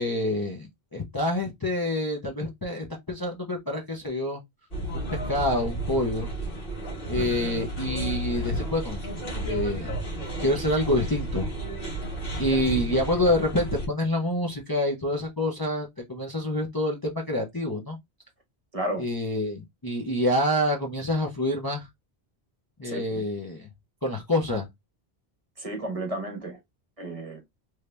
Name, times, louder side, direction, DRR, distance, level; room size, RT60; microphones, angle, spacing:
voice 1, 0.0-4.4 4.9-6.3 7.1-9.0 9.4-9.9 10.4-11.5 12.4-18.0 19.0-21.9 22.8-23.7 24.0-24.7, left 1 dB, 25° left, 0.7 m, -27 dB
sound 1, 4.7-13.9, right 1 dB, 60° left, 1.7 m, -32 dB
voice 2, 18.7-19.1 22.8-23.2 25.6-26.6 27.0-27.4, right 1 dB, 35° right, 1.1 m, -32 dB
3.3 x 2.7 x 3.2 m
omnidirectional pair, 1.1 m